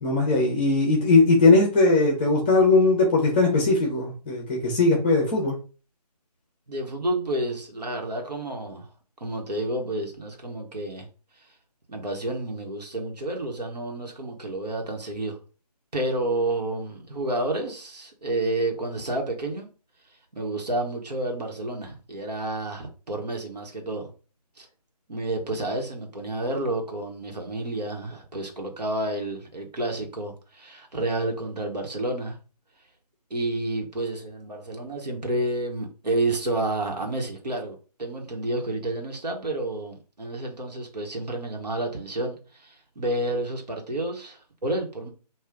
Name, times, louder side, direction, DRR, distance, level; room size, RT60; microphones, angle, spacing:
voice 1, 0.0-5.6, left 3 dB, 15° left, 0.8 m, -19 dB
voice 2, 6.7-8.9 9.2-11.1 11.9-15.4 15.9-19.7 20.3-24.1 24.6-24.7 25.1-32.4 33.3-45.1, right 1 dB, 75° right, 1.4 m, -30 dB
3.2 x 2.6 x 3.7 m
figure-of-eight pair, 155°, 21 cm